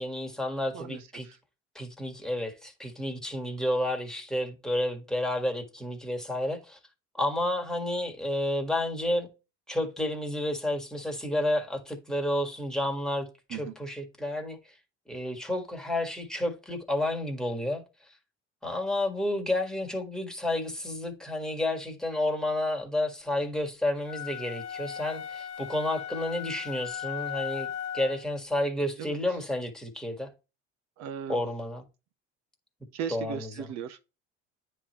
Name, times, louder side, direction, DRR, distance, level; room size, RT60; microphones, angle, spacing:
voice 1, 0.0-1.3 1.7-6.8 7.1-9.3 9.7-14.6 15.1-18.1 18.6-27.7 27.9-30.3 31.3-31.8 33.1-33.7, left 1 dB, ahead, 1.7 m, -31 dB
voice 2, 0.7-1.4 13.5-13.7 29.0-29.2 31.0-31.4 32.9-34.0, right 8 dB, 60° right, 0.9 m, -37 dB
sound 1, 24.0-28.3, left 9 dB, 50° left, 1.0 m, -37 dB
9.6 x 3.3 x 3.1 m
hypercardioid pair, 75°, 32 cm